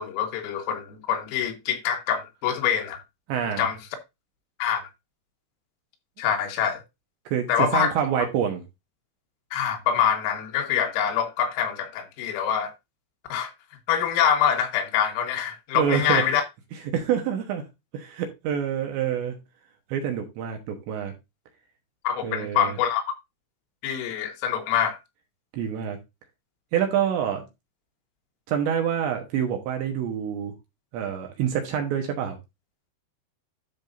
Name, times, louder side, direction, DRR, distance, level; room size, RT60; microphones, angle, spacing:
voice 1, 0.0-3.0 3.6-3.8 4.6-4.8 6.2-6.8 7.5-7.9 9.5-12.7 13.3-13.5 13.9-16.4 22.0-23.0 23.8-25.0, left 8 dB, 85° left, 4.2 m, -25 dB
voice 2, 3.3-3.7 7.3-8.6 15.8-16.2 16.9-17.7 17.9-19.4 19.9-21.1 22.2-22.8 25.5-26.0 26.7-27.5 28.5-30.5 30.9-32.4, right 8 dB, 70° right, 3.0 m, -26 dB
12.5 x 6.1 x 2.6 m
omnidirectional pair, 6.0 m